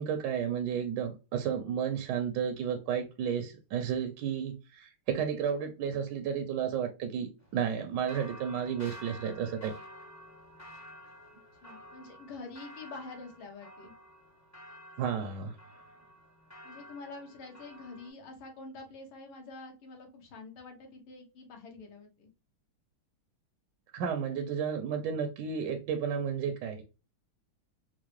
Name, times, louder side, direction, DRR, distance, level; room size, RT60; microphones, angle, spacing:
voice 1, 0.0-9.7 15.0-15.6 23.9-26.8, right 7 dB, 75° right, 1.0 m, -32 dB
sound 1, 7.4-18.1, equal, 20° left, 0.4 m, -51 dB
voice 2, 11.6-13.9 16.6-22.3, left 3 dB, 75° left, 1.8 m, -46 dB
4.5 x 2.0 x 3.0 m
omnidirectional pair, 2.3 m